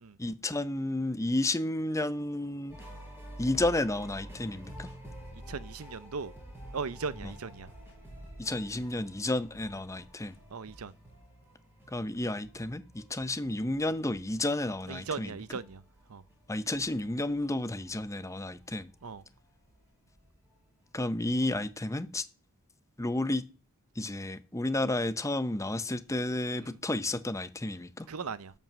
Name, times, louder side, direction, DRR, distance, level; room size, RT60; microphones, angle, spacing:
voice 1, 0.2-2.8 3.4-4.9 7.2-7.3 8.4-10.3 11.9-15.4 16.5-18.9 20.9-22.3 23.0-23.4 24.0-28.1, left 2 dB, 15° left, 0.7 m, -31 dB
sound 1, 2.7-18.0 18.3-21.1 21.4-21.7, equal, 10° right, 6.2 m, -49 dB
voice 2, 5.5-6.3 6.7-7.7 10.5-10.9 14.9-15.8 16.1-16.2 19.0-19.2 28.1-28.5, right 5 dB, 75° right, 0.7 m, -37 dB
12.5 x 5.5 x 7.3 m
head